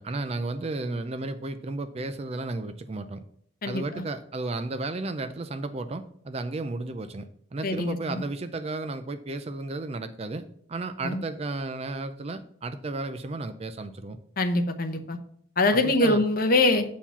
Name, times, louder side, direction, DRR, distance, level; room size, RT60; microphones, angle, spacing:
voice 1, 0.0-3.2 3.6-14.2 15.7-16.2, right 2 dB, 30° right, 10 dB, 0.4 m, -33 dB
voice 2, 3.6-4.0 7.6-8.2 11.0-11.2 14.4-15.2 15.6-16.8, left 2 dB, 45° left, 6 dB, 0.9 m, -24 dB
7.3 x 4.6 x 7.0 m, 0.65 s
head